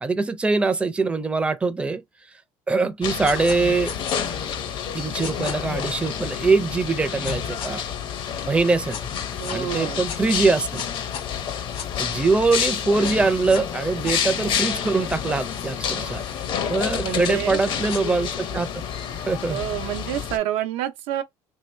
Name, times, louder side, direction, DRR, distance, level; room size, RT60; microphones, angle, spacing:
voice 1, 0.0-2.0 2.7-4.0 4.9-7.8 8.5-9.0 9.5-10.8 12.0-16.2 16.7-18.7 19.3-19.6, right 3 dB, 10° right, 0.5 m, -23 dB
sound 1, 3.0-20.4, left 8 dB, 55° left, 0.7 m, -29 dB
sound 2, 3.2-3.6 3.8-4.2 5.2-5.5 7.2-7.7 8.9-9.6 10.1-11.9 13.0-13.6 14.0-18.0, left 7 dB, 70° left, 1.2 m, -39 dB
voice 2, 9.4-10.1 16.0-16.4 16.9-17.6 19.5-21.2, right 12 dB, 80° right, 0.6 m, -29 dB
3.0 x 2.7 x 3.2 m
cardioid pair, 115°, 10 cm